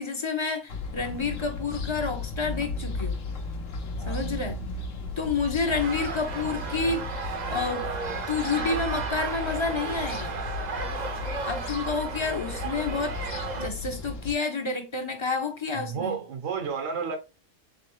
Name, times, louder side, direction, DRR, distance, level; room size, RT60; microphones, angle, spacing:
voice 1, 0.0-3.2 4.1-4.6 5.2-7.1 7.5-7.9 8.3-10.4 11.4-13.2 13.6-16.2, left 4 dB, 35° left, 0.5 m, -29 dB
sound 1, 0.7-14.3, left 3 dB, 80° left, 1.2 m, -35 dB
voice 2, 4.0-4.3 15.7-17.2, right 6 dB, 80° right, 1.3 m, -32 dB
sound 2, 5.7-13.7, right 5 dB, 50° right, 0.6 m, -34 dB
3.8 x 3.3 x 3.0 m
omnidirectional pair, 1.3 m